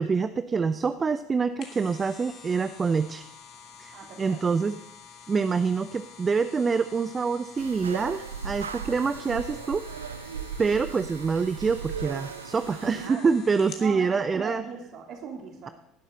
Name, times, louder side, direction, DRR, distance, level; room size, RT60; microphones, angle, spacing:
voice 1, 0.0-3.2 3.8-4.8 5.3-10.2 10.6-14.6, right 5 dB, 25° right, 12 dB, 0.5 m, -26 dB
sound 1, 1.3-13.9 14.4-14.5, left 7 dB, 45° left, 2.4 m, -48 dB
voice 2, 3.9-4.4 13.0-13.3 13.8-15.7, right 6 dB, 45° right, 2 dB, 3.2 m, -39 dB
sound 2, 7.6-13.1, right 6 dB, 75° right, 0.6 m, -37 dB
18.0 x 11.5 x 4.0 m, 0.87 s
figure-of-eight pair, 65°, 0 cm